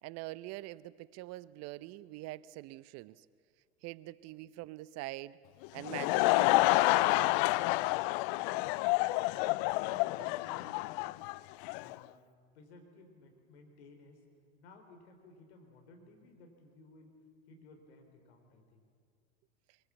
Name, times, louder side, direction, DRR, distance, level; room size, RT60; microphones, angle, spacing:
voice 1, 0.0-3.3 3.8-5.4 5.7-7.4, right 17 dB, 50° right, 19 dB, 0.8 m, -44 dB
Laughter / Crowd, 5.6-11.9, left 21 dB, 55° left, 0.5 m, -29 dB
voice 2, 8.5-9.2 9.5-11.2 11.7-12.2 12.5-14.2 14.6-17.2 17.5-18.8, left 2 dB, 75° left, 4 dB, 4.0 m, -57 dB
23.5 x 23.5 x 7.1 m, 2.2 s
hypercardioid pair, 80°, 33 cm